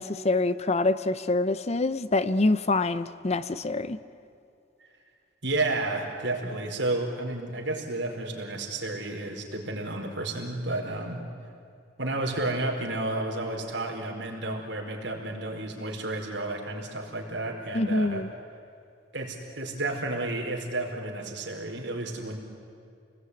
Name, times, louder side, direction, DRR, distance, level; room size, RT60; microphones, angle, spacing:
voice 1, 0.0-4.0 17.7-18.3, left 2 dB, 35° left, 14 dB, 0.7 m, -25 dB
voice 2, 5.4-11.2 12.0-18.2 19.1-22.4, right 2 dB, 70° right, 1 dB, 4.9 m, -31 dB
28.5 x 20.0 x 9.8 m, 2.6 s
head